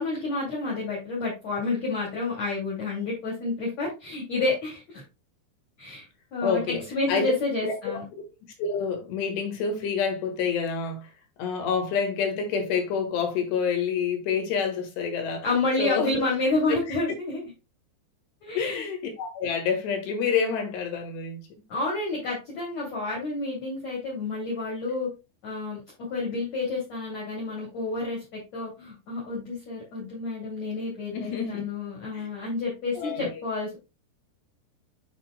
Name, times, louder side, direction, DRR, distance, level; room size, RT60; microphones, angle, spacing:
voice 1, 0.0-5.0 5.8-6.1 6.3-8.0 15.4-17.4 18.4-18.8 21.7-25.1 25.4-25.8 26.1-33.8, left 3 dB, 45° left, 3.0 m, -29 dB
voice 2, 6.4-7.3 7.6-7.7 8.1-8.2 8.6-11.1 11.4-15.5 15.8-16.2 16.7-17.0 18.5-21.4 31.1-31.6 32.1-32.3 32.9-33.4, left 6 dB, 70° left, 3.4 m, -28 dB
8.8 x 5.5 x 2.2 m
omnidirectional pair, 5.5 m